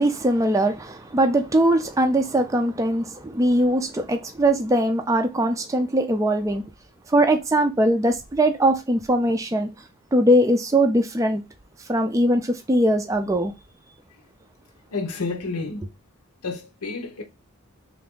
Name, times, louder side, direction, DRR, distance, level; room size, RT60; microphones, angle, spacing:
voice 1, 0.0-6.6 7.1-9.7 10.1-11.4 11.9-13.5, right 1 dB, 15° right, 0.3 m, -21 dB
voice 2, 14.9-15.9 16.4-17.2, left 3 dB, 85° left, 0.8 m, -30 dB
3.4 x 2.6 x 3.6 m
head